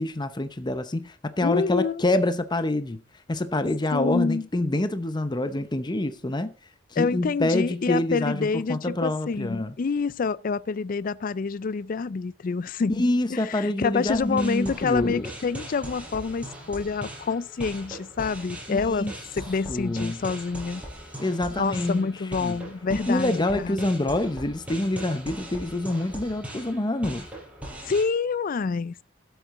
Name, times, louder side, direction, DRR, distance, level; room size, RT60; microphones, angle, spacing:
voice 1, 0.0-3.0 3.3-6.5 6.9-9.7 13.0-15.2 18.7-19.1 19.7-20.2 21.2-22.1 22.4-22.6 22.9-27.3, left 1 dB, 25° left, 0.8 m, -26 dB
voice 2, 1.4-2.0 3.9-4.5 7.0-20.8 21.6-23.9 27.8-29.0, left 5 dB, 50° left, 0.4 m, -27 dB
sound 1, 14.1-28.0, right 1 dB, 10° right, 5.2 m, -40 dB
13.0 x 8.1 x 3.7 m
head